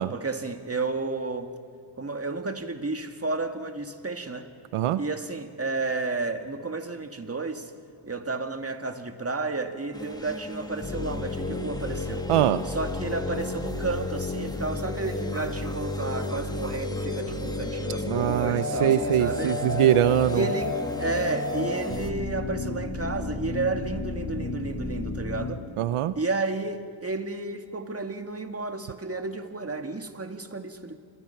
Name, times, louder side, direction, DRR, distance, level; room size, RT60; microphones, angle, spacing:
voice 1, 0.1-1.5 2.0-4.5 5.0-7.7 8.0-12.3 12.7-19.6 20.3-25.6 26.2-31.0, right 3 dB, 30° right, 2.2 m, -32 dB
sound 1, 9.9-22.1, left 1 dB, 10° left, 1.7 m, -40 dB
sound 2, 10.8-25.6, left 2 dB, 30° left, 3.0 m, -32 dB
voice 2, 12.3-12.6 18.1-20.5 25.8-26.1, right 12 dB, 90° right, 0.7 m, -23 dB
28.5 x 23.0 x 5.9 m
cardioid pair, 55°, 49 cm